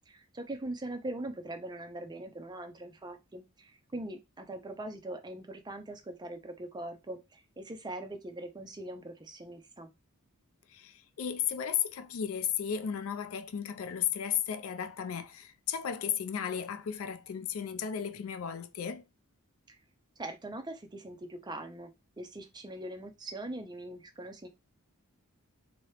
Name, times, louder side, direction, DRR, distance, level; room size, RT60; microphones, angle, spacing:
voice 1, 0.0-9.9 19.7-19.8 20.2-21.9 22.2-24.5, right 1 dB, 20° right, 0.5 m, -41 dB
voice 2, 10.7-19.0, left 8 dB, 65° left, 0.4 m, -34 dB
2.9 x 2.7 x 3.2 m
head